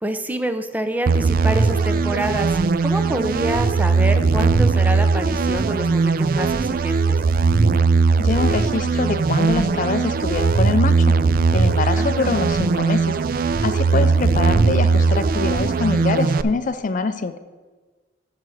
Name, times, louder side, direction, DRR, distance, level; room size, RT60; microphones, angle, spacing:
voice 1, 0.0-7.2 12.0-12.4 13.9-14.5, right 1 dB, 10° right, 8 dB, 0.6 m, -27 dB
sound 1, 1.1-16.4, right 4 dB, 50° right, 0.4 m, -19 dB
voice 2, 8.2-11.1 11.5-13.2 13.6-17.4, left 4 dB, 45° left, 12 dB, 0.4 m, -24 dB
9.4 x 5.7 x 6.3 m, 1.4 s
head